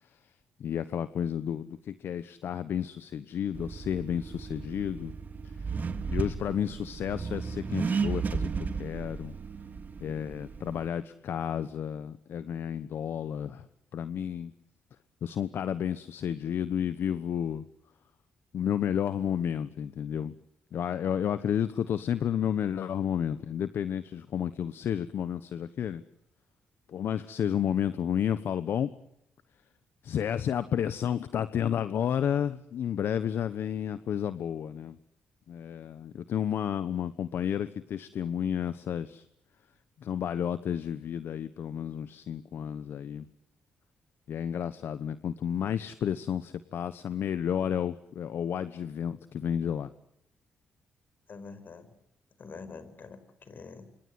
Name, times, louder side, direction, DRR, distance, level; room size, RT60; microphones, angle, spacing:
voice 1, 0.6-5.1 5.6-5.8 6.1-8.5 8.8-9.3 10.0-13.7 13.9-14.5 15.2-17.7 18.5-20.3 20.7-26.0 26.9-28.9 30.0-35.0 35.5-39.2 40.0-43.3 44.3-49.9, left 9 dB, 70° left, 13 dB, 1.1 m, -31 dB
Accelerating revving vroom, 3.5-10.9, right 5 dB, 45° right, 2.7 m, -34 dB
voice 2, 51.3-52.0 52.4-53.9, left 4 dB, 50° left, 12 dB, 5.0 m, -46 dB
28.0 x 25.5 x 7.9 m, 0.75 s
cardioid pair, 75°, 4 cm